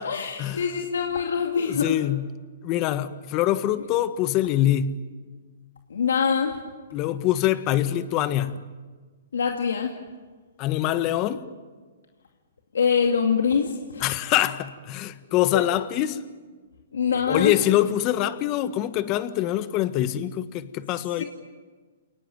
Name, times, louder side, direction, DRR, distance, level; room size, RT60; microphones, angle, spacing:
voice 1, 0.0-2.0 5.9-6.6 9.3-9.9 12.7-14.1 15.5-15.7 16.9-17.6 21.2-21.3, left 6 dB, 85° left, 2.4 m, -24 dB
voice 2, 1.6-2.3 2.6-5.0 6.9-8.6 10.6-11.4 14.0-16.2 17.3-21.2, left 13 dB, 35° left, 1.5 m, -24 dB
29.0 x 19.0 x 9.3 m
hypercardioid pair, 140°, 0 cm